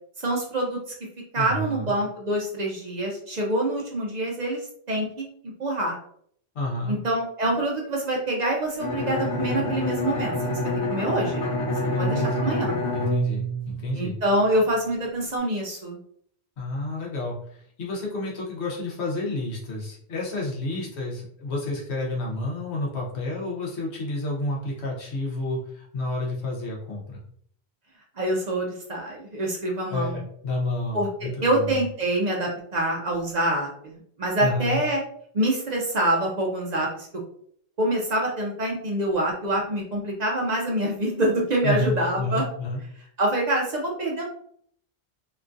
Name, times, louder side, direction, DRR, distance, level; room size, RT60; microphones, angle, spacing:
voice 1, 0.2-0.8 1.3-4.6 4.9-5.3 5.6-6.0 6.9-11.5 11.8-12.8 13.9-16.0 28.2-30.1 30.9-35.0 35.3-37.1 37.8-42.4 43.2-44.2, right 1 dB, 50° right, -1 dB, 0.6 m, -26 dB
voice 2, 1.3-1.9 6.5-7.0 11.9-12.7 12.9-14.1 16.6-27.2 29.9-31.9 34.4-34.8 41.6-42.8, left 2 dB, 85° left, -3 dB, 1.2 m, -30 dB
Bowed string instrument, 8.8-14.5, left 1 dB, 60° left, 1.0 m, -27 dB
2.9 x 2.3 x 2.5 m, 0.63 s
omnidirectional pair, 1.1 m